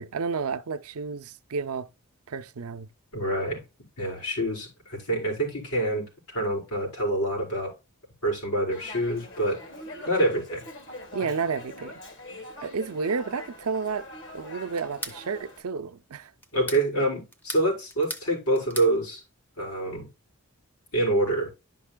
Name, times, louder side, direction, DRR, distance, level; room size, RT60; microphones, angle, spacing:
voice 1, 0.0-1.9 2.3-2.9 11.1-11.9 12.6-14.1 14.3-16.3, right 5 dB, 80° right, 0.6 m, -31 dB
voice 2, 3.1-3.6 4.0-7.7 8.2-9.6 10.1-10.6 16.5-19.2 19.6-20.1 20.9-21.5, right 1 dB, 85° left, 4.2 m, -26 dB
Dog, 8.7-15.6, left 1 dB, 55° left, 1.7 m, -43 dB
sound 1, 14.8-15.2 16.4-16.9 17.3-18.3 18.5-18.9, equal, 10° left, 0.6 m, -37 dB
11.0 x 5.4 x 2.3 m
head